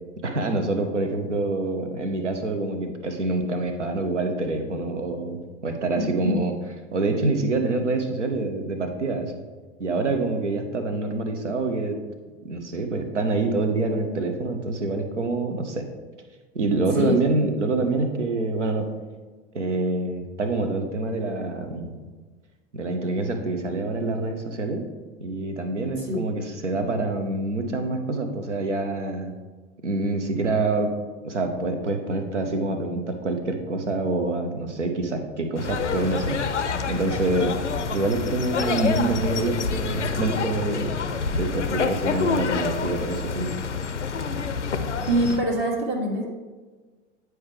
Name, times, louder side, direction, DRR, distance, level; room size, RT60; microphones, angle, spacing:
voice 1, 0.2-6.5 6.9-9.3 9.8-12.0 12.4-15.8 16.5-18.9 19.5-22.0 22.7-24.8 25.2-29.3 29.8-30.9 31.2-36.4 36.9-37.5 37.9-40.9 41.3-43.5, right 2 dB, 85° right, 6 dB, 0.8 m, -26 dB
voice 2, 6.0-6.4 17.0-17.3 26.0-26.3 45.1-46.3, equal, 35° right, 0 dB, 1.2 m, -24 dB
sound 1, 35.6-45.4, left 5 dB, 85° left, 0.5 m, -27 dB
9.4 x 4.6 x 3.2 m, 1.4 s
figure-of-eight pair, 75°, 35 cm